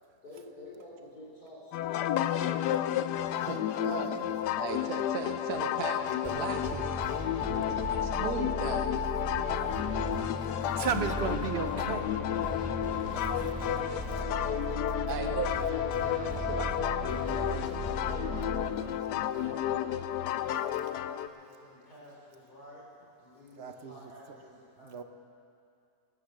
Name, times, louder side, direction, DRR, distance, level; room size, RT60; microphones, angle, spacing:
voice 1, 0.2-2.9 13.0-14.7 15.4-19.7 21.0-25.0, left 1 dB, 70° left, -5 dB, 4.8 m, -50 dB
sound 1, 1.7-21.3, left 11 dB, 85° left, 1.2 m, -31 dB
voice 2, 3.4-7.0 7.8-9.0 13.1-13.2 15.1-15.5 16.5-16.7, right 6 dB, 70° right, 4 dB, 1.3 m, -37 dB
sound 2, 6.2-18.6, right 2 dB, 5° right, 1.8 m, -37 dB
voice 3, 7.5-7.8 9.3-9.7 10.8-12.1 13.2-13.3 23.6-24.1 24.8-25.0, right 6 dB, 50° right, 8 dB, 0.8 m, -35 dB
19.5 x 9.6 x 6.5 m, 2.4 s
omnidirectional pair, 1.7 m